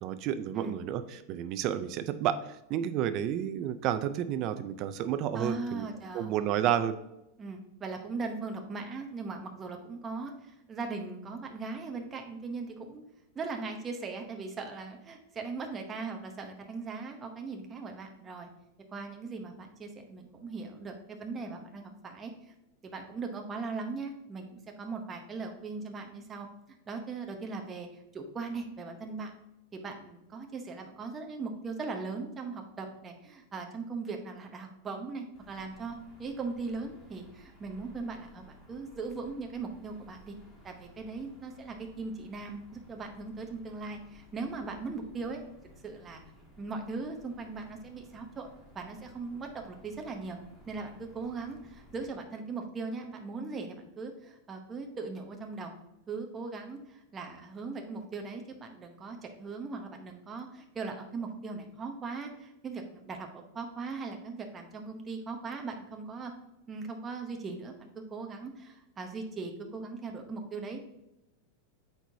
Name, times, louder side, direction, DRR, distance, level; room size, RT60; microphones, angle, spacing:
voice 1, 0.0-5.9 6.1-7.0, right 10 dB, 40° right, 11 dB, 0.5 m, -31 dB
voice 2, 5.3-6.7 7.4-13.0 13.3-18.5 18.9-22.5 22.8-26.5 26.9-29.3 29.7-40.3 40.6-45.4 45.8-46.2 46.6-48.5 48.7-50.4 50.7-55.7 56.1-66.3 66.7-70.8, right 4 dB, 20° right, 3 dB, 0.8 m, -39 dB
sound 1, 35.3-52.1, equal, 5° left, 1.6 m, -57 dB
8.1 x 4.7 x 2.8 m, 0.88 s
supercardioid pair, 155°, 0 cm